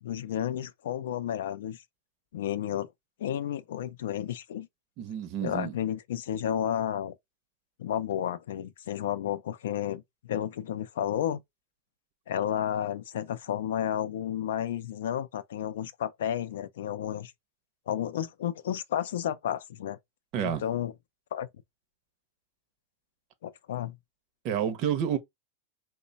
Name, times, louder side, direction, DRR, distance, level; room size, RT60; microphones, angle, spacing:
voice 1, 0.0-1.8 2.3-2.9 3.2-4.7 5.4-7.1 7.8-11.4 12.3-17.3 17.9-20.0 20.4-20.9 21.3-21.5 23.4-24.0, left 10 dB, 75° left, 0.4 m, -32 dB
voice 2, 5.0-5.7 20.3-20.6 24.4-25.2, right 9 dB, 35° right, 0.6 m, -29 dB
3.1 x 2.1 x 3.9 m
supercardioid pair, 160°, 0 cm